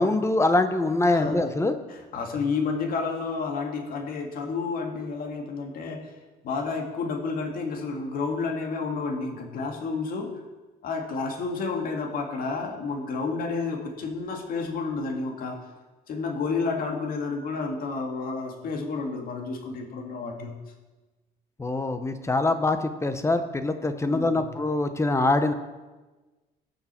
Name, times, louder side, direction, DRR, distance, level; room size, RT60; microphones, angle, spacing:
voice 1, 0.0-1.7 21.6-25.5, left 2 dB, 15° left, 9 dB, 0.9 m, -24 dB
voice 2, 1.9-6.1 6.4-10.3 10.8-15.6 16.1-20.5 24.1-24.4, left 4 dB, 60° left, 2 dB, 2.1 m, -30 dB
17.5 x 6.6 x 4.4 m, 1.2 s
cardioid pair, 110°, 17 cm